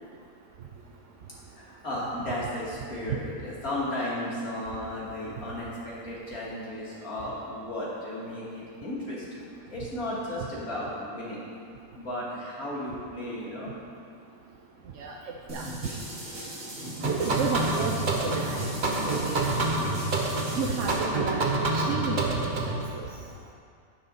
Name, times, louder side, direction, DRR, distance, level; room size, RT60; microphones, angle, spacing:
voice 1, 1.5-11.4 11.9-13.7, left 1 dB, 70° left, -7 dB, 3.1 m, -34 dB
voice 2, 15.5-16.0 17.1-18.7 19.0-19.4 20.6-23.0, right 5 dB, 60° right, 0 dB, 1.0 m, -32 dB
sound 1, 15.5-21.0, right 1 dB, 80° right, 3.2 m, -38 dB
sound 2, 17.0-22.8, right 2 dB, 35° right, 1.0 m, -28 dB
11.0 x 10.5 x 4.2 m, 2.4 s
omnidirectional pair, 1.6 m